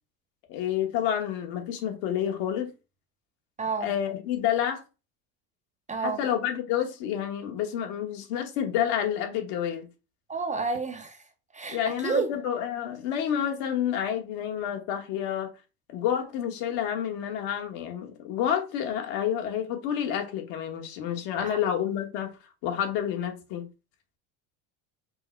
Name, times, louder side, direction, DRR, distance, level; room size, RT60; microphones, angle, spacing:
voice 1, 0.5-2.7 3.8-4.8 6.0-9.9 11.7-15.5 15.9-22.3 22.6-23.7, left 9 dB, 70° left, 1.4 m, -29 dB
voice 2, 3.6-3.9 5.9-6.2 10.3-11.2 11.5-12.3 21.4-21.6, right 4 dB, 20° right, 0.4 m, -30 dB
5.3 x 2.1 x 4.4 m
cardioid pair, 130°, 41 cm